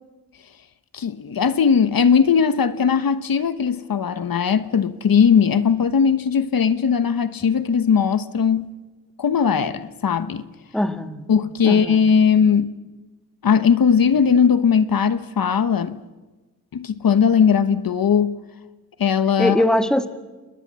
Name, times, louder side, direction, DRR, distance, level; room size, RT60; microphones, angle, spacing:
voice 1, 0.9-8.7 9.2-10.4 11.3-12.7 13.4-16.0 16.7-18.4 19.0-19.6, left 6 dB, 65° left, 1.1 m, -18 dB
voice 2, 10.7-11.3 11.6-12.1 19.4-20.1, left 1 dB, ahead, 1.6 m, -21 dB
29.0 x 20.5 x 7.5 m
wide cardioid pair, 95°, 37 cm